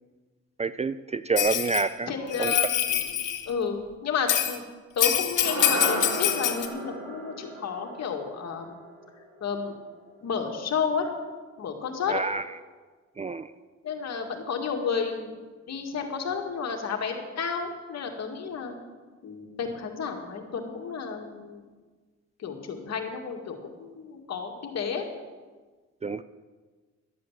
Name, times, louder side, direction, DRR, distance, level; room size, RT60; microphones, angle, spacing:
voice 1, 0.6-2.1 2.4-2.5 12.1-12.4 13.2-13.5 26.0-26.2, right 4 dB, 20° right, 13 dB, 0.4 m, -27 dB
Bell, 1.4-1.8 2.3-3.4 4.3-4.5 5.0-6.7, left 11 dB, 85° left, 1.5 m, -25 dB
voice 2, 2.1-4.7 5.0-8.7 9.4-9.7 10.2-11.1 11.6-12.2 13.8-18.8 19.2-21.7 22.4-25.0, left 6 dB, 60° left, 3 dB, 2.2 m, -32 dB
sound 1, 5.4-9.9, right 1 dB, 60° right, 3.8 m, -34 dB
12.0 x 7.9 x 8.8 m, 1.4 s
cardioid pair, 90°, 30 cm